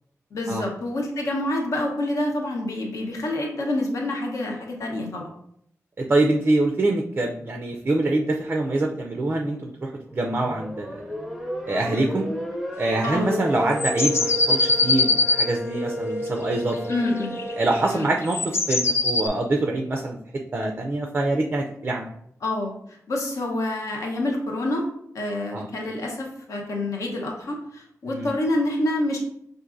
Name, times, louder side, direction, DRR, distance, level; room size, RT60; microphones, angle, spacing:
voice 1, 0.3-5.3 13.0-13.3 16.9-17.3 17.9-18.1 22.4-22.7 23.1-24.8 25.1-29.2, left 1 dB, 70° left, 0 dB, 0.9 m, -27 dB
voice 2, 6.0-11.0 11.7-12.3 12.8-16.8 17.6-18.4 18.7-20.2 20.5-22.1 25.5-25.7 28.1-28.3, right 2 dB, 35° right, 2 dB, 0.4 m, -25 dB
sound 1, 10.1-17.8, equal, ahead, 0.7 m, -32 dB
sound 2, 13.8-15.5 16.9-19.3, left 3 dB, 50° left, 0.4 m, -22 dB
5.9 x 2.5 x 2.5 m, 0.71 s
wide cardioid pair, 160°, 6 cm